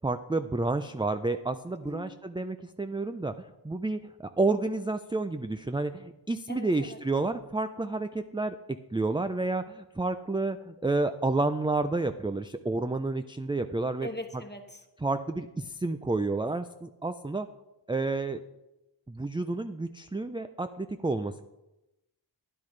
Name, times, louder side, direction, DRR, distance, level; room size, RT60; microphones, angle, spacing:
voice 1, 0.0-8.6 8.9-14.1 15.0-17.5 17.9-18.4 19.1-21.4, right 2 dB, 10° right, 9 dB, 0.3 m, -30 dB
voice 2, 1.8-2.1 6.5-7.0 14.0-14.8, left 1 dB, 20° left, 5 dB, 1.2 m, -40 dB
12.0 x 9.9 x 3.2 m, 0.96 s
wide cardioid pair, 45°, 47 cm